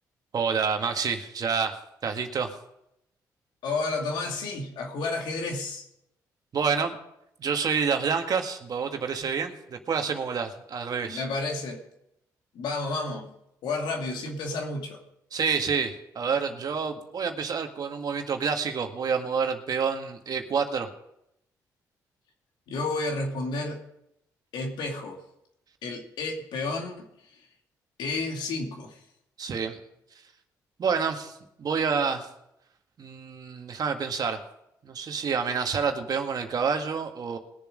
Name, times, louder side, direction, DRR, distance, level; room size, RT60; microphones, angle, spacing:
voice 1, 0.3-2.5 6.5-7.0 7.4-11.2 15.3-20.9 29.4-29.8 30.8-32.3 33.0-34.4 34.8-37.4, right 6 dB, 55° right, 5 dB, 1.8 m, -28 dB
voice 2, 3.6-5.9 11.0-11.8 12.5-13.3 13.6-15.0 22.7-23.8 24.5-25.2 25.8-27.1 27.3-27.4 28.0-29.0, left 3 dB, 75° left, 2 dB, 2.4 m, -31 dB
20.5 x 7.1 x 5.1 m, 0.80 s
supercardioid pair, 65°, 8 cm